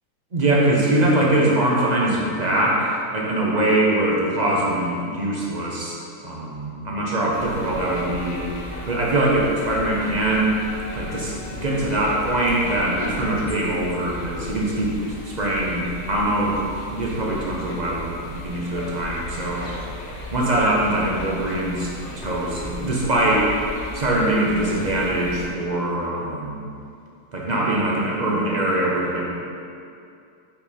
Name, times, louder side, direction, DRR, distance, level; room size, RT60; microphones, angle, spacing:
voice 1, 0.3-6.0 6.2-8.5 8.9-10.6 10.9-14.9 15.2-16.6 16.9-19.7 20.3-23.5 23.9-26.6 27.3-29.3, right 1 dB, 35° right, -4 dB, 0.8 m, -22 dB
sound 1, 7.3-25.5, left 1 dB, 40° left, 0.7 m, -36 dB
5.7 x 5.1 x 4.2 m, 2.5 s
omnidirectional pair, 1.7 m